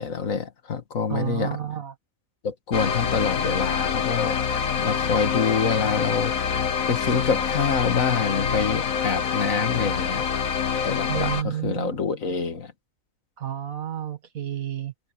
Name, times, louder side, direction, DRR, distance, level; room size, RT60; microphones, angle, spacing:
voice 1, 0.0-1.6 2.4-4.4 4.8-6.4 6.9-10.3 10.8-12.7, left 6 dB, 70° left, 2.1 m, -26 dB
voice 2, 1.1-1.9 11.1-12.1 13.4-14.9, right 10 dB, 80° right, 1.9 m, -30 dB
sound 1, 2.7-11.4, left 7 dB, 85° left, 1.7 m, -26 dB
omnidirectional pair, 1.4 m